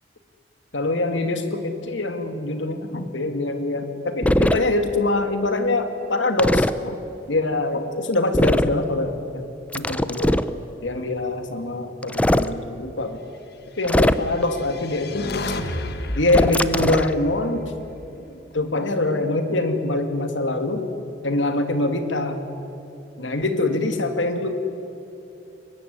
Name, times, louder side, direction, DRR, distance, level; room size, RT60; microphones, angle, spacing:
voice 1, 0.7-7.0 7.3-9.5 9.7-10.4 10.8-13.2 13.8-15.3 16.2-17.7 18.5-20.9 21.2-22.4 23.2-24.5, left 2 dB, 85° left, 7 dB, 2.4 m, -24 dB
sound 1, 4.2-4.6 6.4-6.7 8.3-8.8 9.7-10.5 12.0-12.5 13.8-14.4 16.3-17.1, left 1 dB, 5° left, 0.6 m, -20 dB
sound 2, 14.2-18.5, left 1 dB, 60° left, 1.8 m, -32 dB
23.0 x 20.5 x 9.7 m, 2.9 s
head